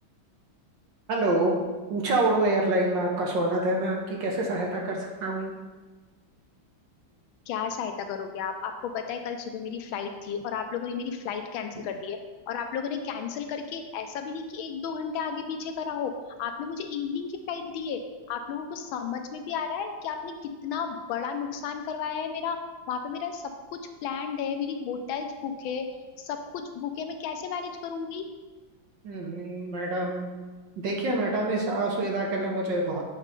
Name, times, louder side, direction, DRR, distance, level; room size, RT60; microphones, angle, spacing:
voice 1, 1.1-1.5 1.9-5.5 29.0-30.3 30.8-33.0, right 2 dB, 65° right, -1 dB, 1.6 m, -26 dB
voice 2, 7.5-12.2 12.5-16.1 16.4-18.0 18.3-20.3 20.6-22.6 22.9-23.4 24.0-25.8 26.2-28.3, left 6 dB, 80° left, 6 dB, 1.4 m, -33 dB
7.4 x 3.1 x 5.2 m, 1.3 s
omnidirectional pair, 2.3 m